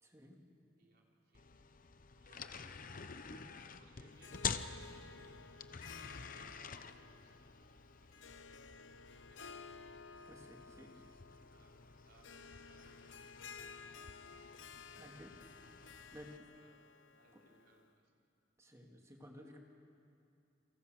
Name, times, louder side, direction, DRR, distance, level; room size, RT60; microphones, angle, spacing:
voice 1, 0.0-0.4 3.3-3.4 10.2-10.9 15.0-15.3 16.1-16.3 17.3-17.4 18.6-19.6, equal, 15° right, 1 dB, 2.8 m, -55 dB
voice 2, 0.8-1.7 2.2-2.9 3.3-7.7 8.0-8.7 9.1-10.0 10.6-14.0 14.9-15.6 15.9-18.2, right 2 dB, 60° right, -1 dB, 4.2 m, -69 dB
sound 1, 1.3-16.4, left 6 dB, 45° left, 0.9 m, -49 dB
Harp, 4.1-17.9, left 5 dB, 80° left, 0.8 m, -55 dB
28.5 x 23.5 x 6.6 m, 2.5 s
head